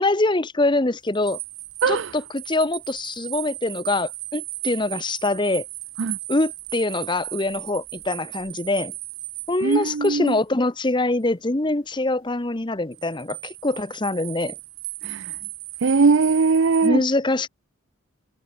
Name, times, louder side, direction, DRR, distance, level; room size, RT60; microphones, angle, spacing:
voice 1, 0.0-1.4 1.9-5.7 6.3-8.9 9.5-14.5 16.8-17.5, left 2 dB, 20° left, 0.8 m, -24 dB
sound 1, 1.1-10.4 12.9-16.9, right 18 dB, 80° right, 1.6 m, -36 dB
voice 2, 1.8-2.1 6.0-6.2 9.6-10.4 15.0-15.4 15.8-17.0, right 4 dB, 60° right, 0.5 m, -20 dB
head